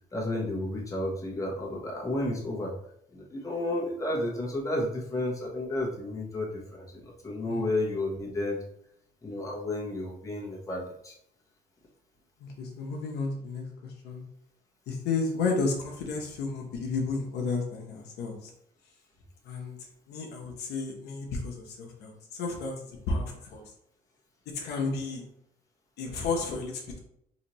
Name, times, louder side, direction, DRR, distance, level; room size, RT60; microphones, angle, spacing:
voice 1, 0.1-2.7 3.1-8.6 9.2-11.1, left 1 dB, 20° left, -2 dB, 1.0 m, -32 dB
voice 2, 12.4-14.2 14.9-18.5 19.4-19.8 20.1-22.7 23.1-23.6 24.5-25.2 26.0-27.0, left 4 dB, 80° left, 0 dB, 0.9 m, -32 dB
4.0 x 2.7 x 3.0 m, 0.72 s
cardioid pair, 110°, 17 cm